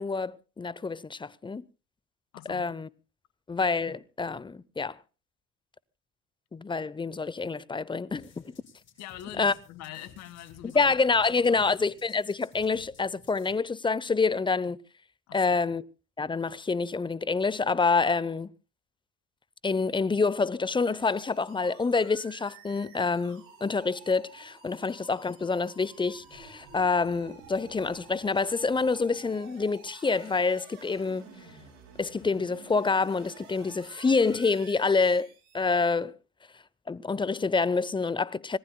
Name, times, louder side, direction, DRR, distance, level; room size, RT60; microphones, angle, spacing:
voice 1, 0.0-1.6 2.5-2.9 3.5-5.0 6.5-8.3 9.4-9.5 10.7-14.8 15.3-15.8 16.2-18.5 19.6-31.3 32.0-35.3 35.5-36.1 36.9-38.6, left 4 dB, 15° left, 0.7 m, -27 dB
voice 2, 2.3-2.7 9.0-10.9 11.3-11.6 15.3-15.6, left 12 dB, 65° left, 1.8 m, -44 dB
sound 1, 8.1-13.5, left 5 dB, 45° left, 5.9 m, -56 dB
sound 2, 20.9-35.7, right 5 dB, 80° right, 7.9 m, -51 dB
25.5 x 18.5 x 2.2 m
hypercardioid pair, 65°, 29 cm